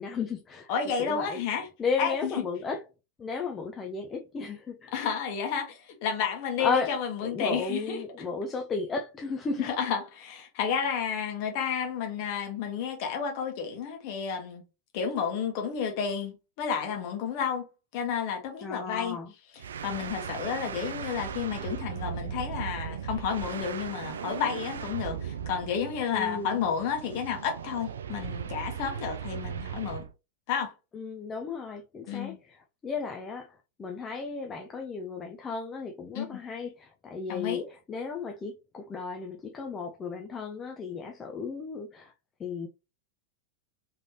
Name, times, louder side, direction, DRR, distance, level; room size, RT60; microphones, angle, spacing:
voice 1, 0.0-0.7 1.0-1.4 1.8-2.8 3.2-4.9 6.6-6.9 7.2-9.7 18.6-19.3 26.1-26.6 30.9-42.1 42.4-42.7, left 4 dB, 20° left, 0.6 m, -34 dB
voice 2, 0.7-1.7 2.0-2.1 4.9-8.0 9.6-14.6 14.9-17.7 17.9-19.2 19.8-30.0 30.5-30.7 32.1-32.4 36.1-36.4 37.3-37.6, left 7 dB, 45° left, 1.3 m, -31 dB
sound 1, 19.6-30.1, right 8 dB, 65° right, 0.3 m, -37 dB
3.8 x 3.3 x 2.9 m
figure-of-eight pair, 90°, 0 cm